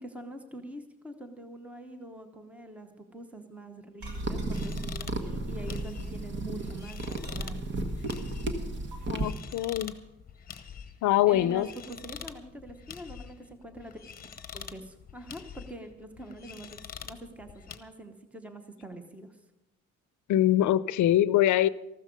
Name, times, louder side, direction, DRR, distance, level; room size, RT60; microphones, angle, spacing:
voice 1, 0.0-7.6 11.3-14.0 14.5-19.4, right 1 dB, 5° right, 0.9 m, -44 dB
sound 1, 4.0-9.3, right 2 dB, 40° right, 1.4 m, -34 dB
sound 2, 4.0-4.9 5.3-6.2 6.6-7.8 8.9-9.0, right 2 dB, 70° right, 3.0 m, -52 dB
sound 3, 4.5-17.8, left 7 dB, 30° left, 1.0 m, -46 dB
voice 2, 9.1-9.9 11.0-11.7 20.3-21.7, left 13 dB, 75° left, 0.6 m, -23 dB
14.5 x 13.0 x 5.2 m
cardioid pair, 170°, 30 cm